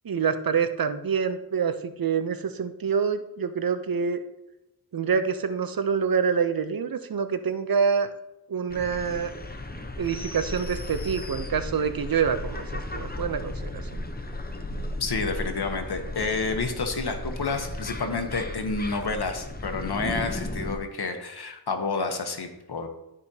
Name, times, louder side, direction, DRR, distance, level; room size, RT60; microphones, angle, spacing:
voice 1, 0.0-4.2 4.9-8.1 8.5-9.3 10.0-13.8, right 6 dB, 60° right, 10 dB, 0.6 m, -26 dB
sound 1, 8.7-20.8, left 1 dB, 25° left, 0.7 m, -35 dB
voice 2, 15.0-22.9, left 4 dB, 70° left, 6 dB, 1.0 m, -29 dB
12.5 x 5.0 x 2.8 m, 0.93 s
wide cardioid pair, 65°, 41 cm